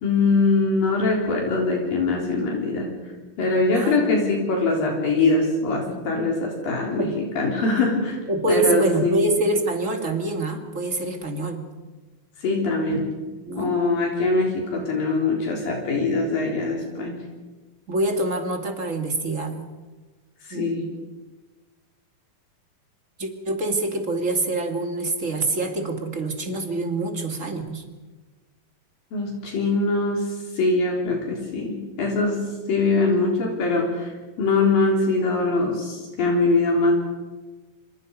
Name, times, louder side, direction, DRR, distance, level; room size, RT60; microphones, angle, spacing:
voice 1, 0.0-2.9 3.4-8.2 8.5-9.2 12.4-13.0 13.6-17.2 20.4-20.9 29.1-34.1 34.4-36.9, left 3 dB, 75° left, -1 dB, 5.5 m, -22 dB
voice 2, 3.7-4.0 5.9-6.1 7.0-7.1 8.3-11.6 13.4-13.8 17.9-19.7 20.5-20.9 23.2-27.8, right 2 dB, 25° right, 4 dB, 2.0 m, -26 dB
27.0 x 26.5 x 5.3 m, 1.3 s
omnidirectional pair, 4.1 m